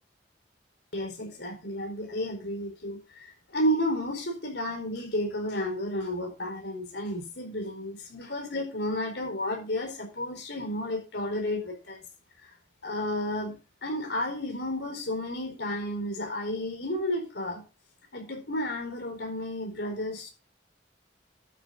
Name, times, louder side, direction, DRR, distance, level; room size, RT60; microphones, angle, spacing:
voice 1, 0.9-12.0 12.8-17.6 18.1-20.3, left 1 dB, 70° left, 3 dB, 4.5 m, -32 dB
12.0 x 8.2 x 3.9 m, 0.32 s
head